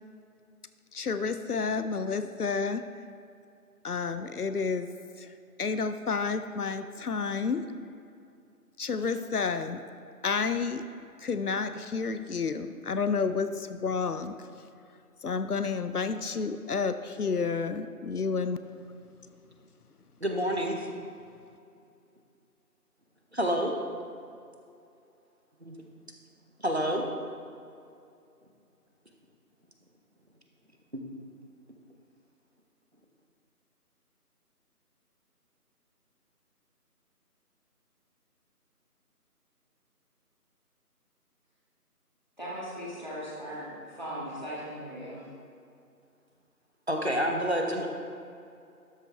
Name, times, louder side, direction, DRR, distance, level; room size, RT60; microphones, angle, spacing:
voice 1, 0.9-2.9 3.8-4.9 5.2-7.7 8.8-9.8 10.2-10.9 11.2-14.5 15.2-18.6, left 5 dB, 70° left, 10 dB, 0.6 m, -30 dB
voice 2, 20.2-20.9 23.3-23.7 25.6-25.8 26.6-27.0 30.9-31.0 46.9-47.9, equal, 45° right, 2 dB, 0.9 m, -28 dB
voice 3, 42.4-43.7 44.0-45.2, equal, 30° left, -7 dB, 1.8 m, -38 dB
12.5 x 6.2 x 3.3 m, 2.5 s
figure-of-eight pair, 180°, 47 cm